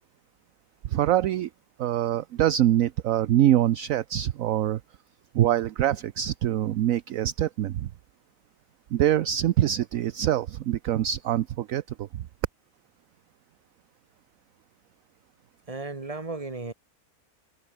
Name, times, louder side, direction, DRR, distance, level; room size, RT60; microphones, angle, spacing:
voice 1, 0.8-1.5 1.8-4.8 5.3-7.9 8.9-12.2, right 12 dB, 65° right, 1.0 m, -24 dB
voice 2, 15.7-16.7, right 3 dB, 20° right, 2.1 m, -34 dB
omnidirectional pair, 1.6 m